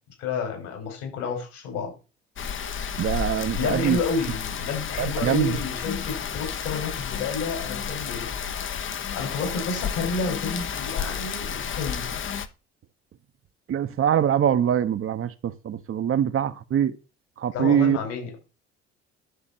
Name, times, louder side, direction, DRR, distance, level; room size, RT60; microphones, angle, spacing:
voice 1, 0.2-1.9 3.6-8.3 9.1-12.2 17.5-18.4, left 4 dB, 70° left, 5.6 m, -30 dB
Rain, 2.4-12.5, left 7 dB, 40° left, 1.0 m, -31 dB
voice 2, 3.0-4.0 5.0-5.5 13.7-17.0 17.4-18.0, right 9 dB, 45° right, 0.9 m, -23 dB
11.0 x 7.0 x 4.4 m
hypercardioid pair, 55°, 32 cm